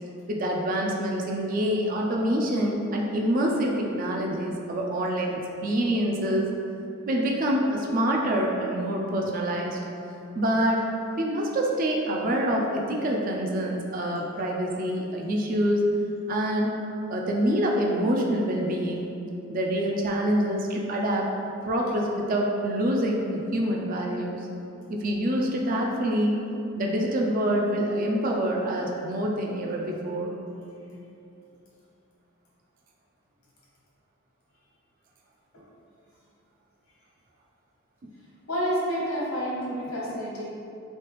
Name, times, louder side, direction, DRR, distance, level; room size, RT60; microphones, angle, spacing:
voice 1, 0.3-6.5 7.1-9.8 10.3-10.8 11.2-15.9 16.3-16.8 17.1-19.1 19.5-21.3 21.6-24.5 24.9-26.4 26.8-30.4, equal, 40° right, -1 dB, 0.4 m, -26 dB
voice 2, 38.5-40.4, equal, 85° left, -7 dB, 1.2 m, -29 dB
3.3 x 3.2 x 3.1 m, 2.7 s
head